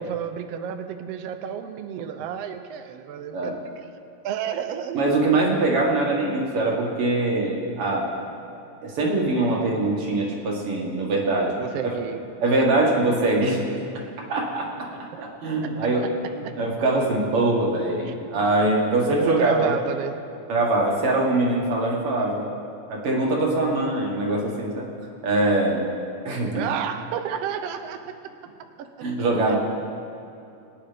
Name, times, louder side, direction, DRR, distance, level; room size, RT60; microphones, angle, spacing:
voice 1, 0.0-3.7 4.2-5.5 11.6-12.8 16.4-16.6 18.0-18.1 19.1-20.2 26.6-28.0 28.8-28.9 29.5-29.6, right 9 dB, 90° right, 7 dB, 1.3 m, -31 dB
voice 2, 4.9-8.2 8.8-11.6 11.8-11.9 12.4-13.6 14.3-14.9 15.2-16.1 16.3-19.7 20.5-22.5 22.9-24.9 25.2-25.9 26.2-26.7 29.0-29.6, right 2 dB, 50° right, -1 dB, 2.5 m, -23 dB
23.0 x 9.7 x 3.4 m, 2.7 s
omnidirectional pair, 3.5 m